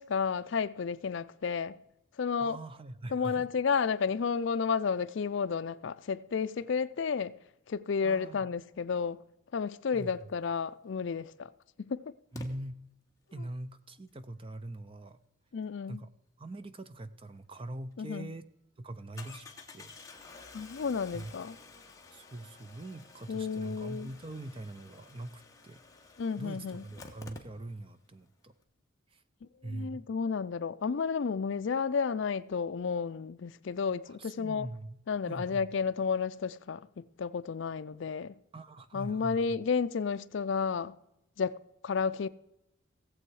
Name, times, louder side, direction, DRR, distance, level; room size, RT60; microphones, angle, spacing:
voice 1, 0.0-1.7 2.2-2.6 3.1-7.4 7.7-9.2 9.5-11.5 11.8-12.0 15.5-16.0 18.0-18.3 20.5-21.6 23.3-24.1 26.2-26.8 29.6-34.7 35.1-38.3 38.9-41.0 41.4-42.3, left 5 dB, 60° left, 0.4 m, -32 dB
voice 2, 2.4-3.5 8.0-8.5 9.9-10.3 12.3-12.8 13.3-15.2 15.9-16.1 16.4-18.5 18.8-19.5 19.7-19.9 21.1-21.3 22.1-25.8 26.1-28.5 29.1-29.2 29.6-30.0 34.1-35.0 35.2-35.7 38.5-39.6, right 1 dB, 25° right, 0.6 m, -43 dB
Engine starting, 10.8-10.9 12.3-12.5 17.6-17.7 18.0-18.1 19.2-28.0 28.3-28.4 28.6-28.7, left 3 dB, 15° left, 1.2 m, -51 dB
17.5 x 7.7 x 4.7 m
head